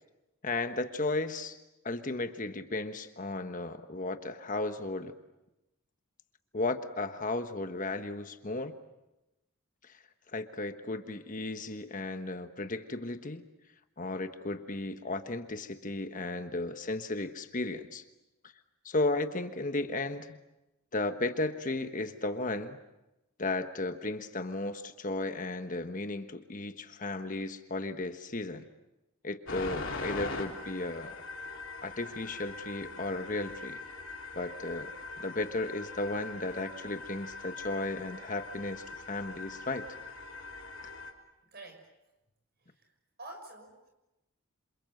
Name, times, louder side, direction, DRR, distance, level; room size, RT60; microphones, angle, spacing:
voice 1, 0.4-1.6 1.8-5.2 6.5-8.7 9.8-10.0 10.3-13.4 14.0-18.0 18.8-20.4 20.9-22.8 23.4-28.6 29.2-31.2 31.8-33.8 34.3-39.9, left 2 dB, 35° left, 8 dB, 1.3 m, -35 dB
sound 1, 29.5-41.1, left 3 dB, 60° left, 3.7 m, -42 dB
voice 2, 41.4-41.9 42.6-42.9 43.2-43.9, right 2 dB, 45° right, 4 dB, 6.2 m, -49 dB
28.0 x 27.5 x 7.8 m, 0.96 s
head